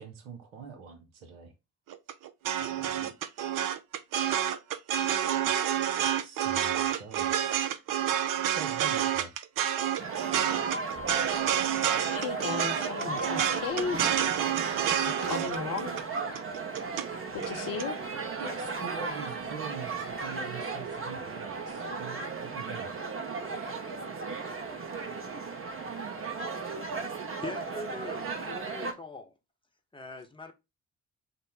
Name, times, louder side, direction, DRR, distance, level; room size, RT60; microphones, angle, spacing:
voice 1, 0.0-1.5 2.6-3.1 6.2-7.5 8.5-9.3 18.4-22.9, right 6 dB, 70° right, 0.9 m, -44 dB
sound 1, 1.9-17.0 17.4-17.8, right 10 dB, 50° right, 0.6 m, -29 dB
sound 2, 10.0-28.9, right 4 dB, 30° right, 0.9 m, -36 dB
voice 2, 12.1-14.1 14.8-16.0 17.3-18.0, left 5 dB, 50° left, 0.9 m, -35 dB
voice 3, 27.4-29.3 29.9-30.5, left 3 dB, 10° left, 0.9 m, -42 dB
5.2 x 2.0 x 4.1 m
figure-of-eight pair, 45°, 42 cm